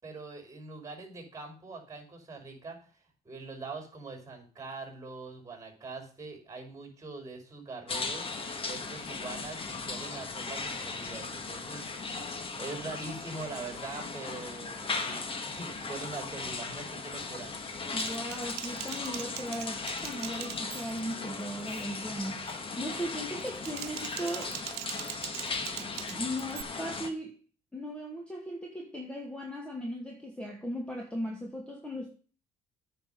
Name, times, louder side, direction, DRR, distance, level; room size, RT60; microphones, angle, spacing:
voice 1, 0.0-2.8 3.2-8.3 8.7-12.1 12.6-17.5, right 3 dB, 20° right, 4 dB, 5.5 m, -43 dB
sound 1, 7.9-27.1, left 4 dB, 35° left, 1.8 m, -37 dB
voice 2, 17.9-24.5 25.8-27.3 27.7-32.1, equal, 5° left, 0 dB, 2.1 m, -37 dB
Typing, 18.0-21.1 21.5-21.8 22.2-22.6 23.4-26.6, right 16 dB, 75° right, 0.5 m, -42 dB
9.4 x 5.8 x 7.9 m, 0.40 s
cardioid pair, 110°, 17 cm